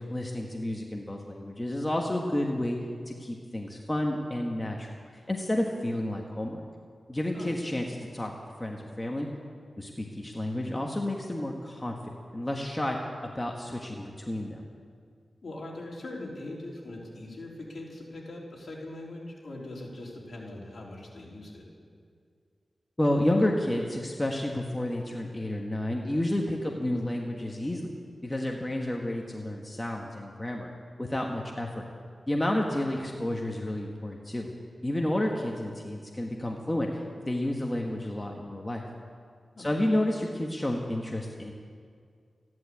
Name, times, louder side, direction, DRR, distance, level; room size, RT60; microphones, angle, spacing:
voice 1, 0.0-2.8 3.1-4.9 5.3-6.6 7.1-8.3 8.6-9.3 9.8-11.9 12.3-14.6 23.0-27.9 28.2-30.7 31.0-31.8 32.3-34.5 34.8-38.8 39.6-41.5, left 1 dB, 20° left, 0 dB, 1.4 m, -30 dB
voice 2, 15.4-21.6 39.6-39.7, left 2 dB, 60° left, -3 dB, 3.6 m, -41 dB
14.5 x 11.0 x 8.5 m, 2.2 s
wide cardioid pair, 85°, 0 cm